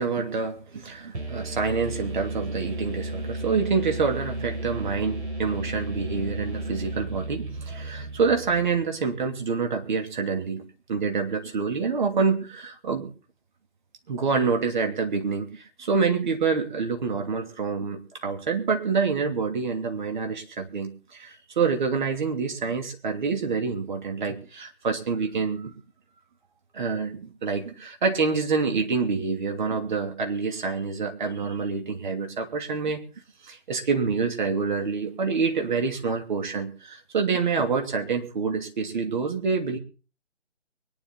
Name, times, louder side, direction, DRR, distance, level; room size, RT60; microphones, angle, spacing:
voice 1, 0.0-13.1 14.1-25.7 26.7-33.0 33.4-39.8, right 5 dB, 40° right, 4 dB, 2.9 m, -27 dB
sound 1, 1.1-8.8, right 2 dB, 70° right, 7.2 m, -34 dB
23.5 x 10.5 x 4.0 m, 0.36 s
figure-of-eight pair, 155°, 35 cm